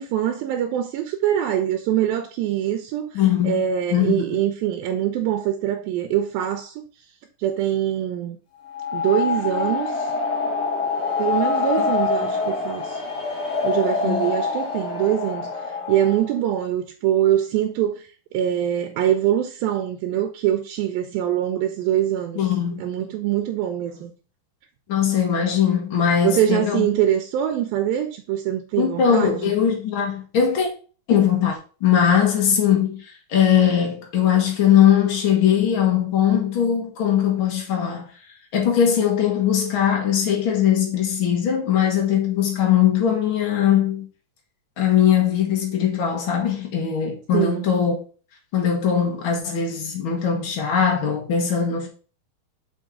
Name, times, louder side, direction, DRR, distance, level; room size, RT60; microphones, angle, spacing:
voice 1, 0.0-6.8 7.4-8.4 8.9-10.1 11.2-13.0 13.6-22.4 22.8-24.1 26.2-29.5 47.3-47.7, right 11 dB, 80° right, 2.2 m, -23 dB
voice 2, 3.1-3.6 3.9-4.4 14.0-14.2 22.3-22.8 24.9-26.9 28.8-30.7 31.1-38.1 38.5-44.1 44.8-47.9 48.5-51.9, left 9 dB, 80° left, 1.1 m, -20 dB
sound 1, 8.6-16.3, left 4 dB, 35° left, 1.9 m, -25 dB
7.3 x 4.6 x 3.6 m
omnidirectional pair, 4.6 m